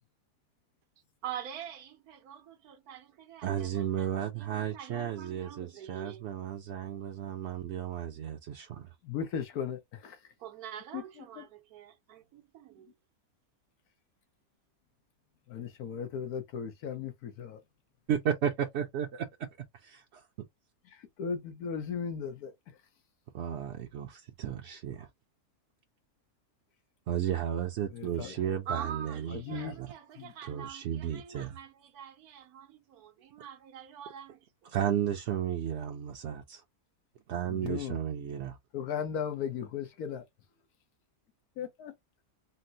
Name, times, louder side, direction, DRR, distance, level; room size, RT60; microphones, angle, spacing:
voice 1, 1.2-6.4 10.4-12.9 28.7-34.7, right 8 dB, 85° right, 1.2 m, -45 dB
voice 2, 3.4-8.9 18.1-19.2 23.3-25.1 27.1-29.9 30.5-31.5 34.7-36.6 37.3-38.6, right 9 dB, 65° right, 0.7 m, -33 dB
voice 3, 9.0-10.2 10.9-11.0 11.4-11.5 15.5-17.6 20.8-22.8 27.9-28.4 29.3-29.8 30.2-30.3 37.5-38.0 38.7-40.2 41.6-41.9, left 7 dB, 90° left, 1.3 m, -37 dB
4.2 x 2.0 x 2.6 m
omnidirectional pair, 1.6 m